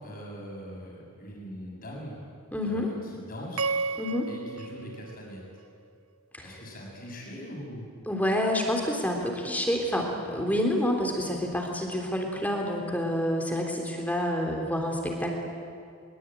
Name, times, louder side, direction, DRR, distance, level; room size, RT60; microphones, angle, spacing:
voice 1, 0.0-2.2 2.6-3.8 4.3-5.4 6.4-7.9, equal, 40° left, -1 dB, 7.0 m, -41 dB
voice 2, 2.5-2.9 4.0-4.3 6.4-6.6 8.1-15.3, left 1 dB, 5° left, 1 dB, 3.4 m, -28 dB
sound 1, 3.6-5.9, right 4 dB, 80° right, 0.6 m, -33 dB
23.5 x 22.5 x 9.2 m, 2.3 s
head